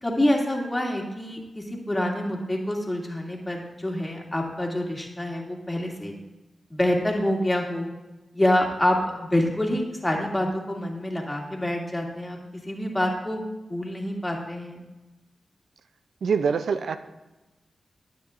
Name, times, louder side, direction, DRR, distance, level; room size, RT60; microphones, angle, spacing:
voice 1, 0.0-6.1 6.7-7.9 8.3-12.4 12.6-14.8, left 1 dB, 20° left, 0 dB, 2.3 m, -26 dB
voice 2, 16.2-17.0, right 6 dB, 80° right, 11 dB, 0.4 m, -24 dB
12.5 x 9.4 x 2.5 m, 1.1 s
cardioid pair, 45°, 0 cm